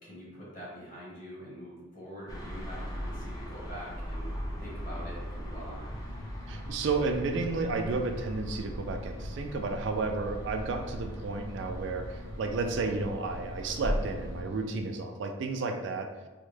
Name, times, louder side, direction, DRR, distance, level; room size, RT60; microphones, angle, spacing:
voice 1, 0.0-4.3 4.6-5.9, equal, 40° left, -6 dB, 1.2 m, -44 dB
sound 1, 2.3-14.4, equal, 20° left, 0.4 m, -39 dB
sound 2, 5.9-15.0, left 2 dB, 70° left, 1.1 m, -47 dB
voice 2, 6.5-16.1, right 3 dB, 60° right, 4 dB, 0.3 m, -32 dB
3.5 x 2.1 x 3.2 m, 1.2 s
head